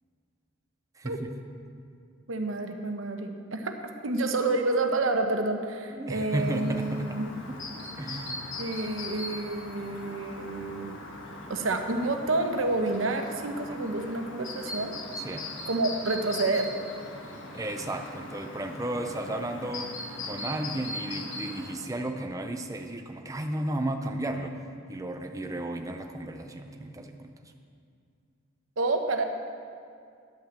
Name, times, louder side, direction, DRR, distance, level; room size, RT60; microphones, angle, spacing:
voice 1, 1.0-1.4 6.0-7.2 7.5-7.6 8.0-8.5 15.2-15.5 17.5-19.9 20.2-24.6 24.9-27.3, right 1 dB, 15° right, 5 dB, 0.5 m, -33 dB
voice 2, 2.3-7.3 8.6-11.0 11.5-14.9 15.7-16.7 28.8-29.2, right 2 dB, 80° right, 5 dB, 0.9 m, -29 dB
Chirp tweet, 6.3-21.7, left 2 dB, 65° left, 1.3 m, -40 dB
10.5 x 5.8 x 7.4 m, 2.3 s
head